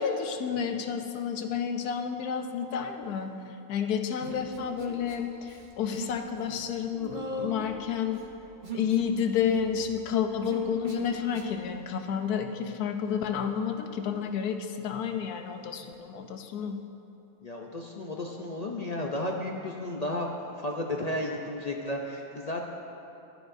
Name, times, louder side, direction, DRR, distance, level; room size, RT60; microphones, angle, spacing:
voice 1, 0.0-8.2 8.7-16.8, left 7 dB, 80° left, 6 dB, 1.2 m, -30 dB
Human voice, 4.2-5.2 5.4-6.2 6.4-11.6, right 2 dB, 35° right, 1.0 m, -39 dB
voice 2, 17.4-22.7, left 1 dB, 55° left, 0 dB, 0.4 m, -33 dB
15.5 x 11.0 x 2.6 m, 2.9 s
omnidirectional pair, 1.6 m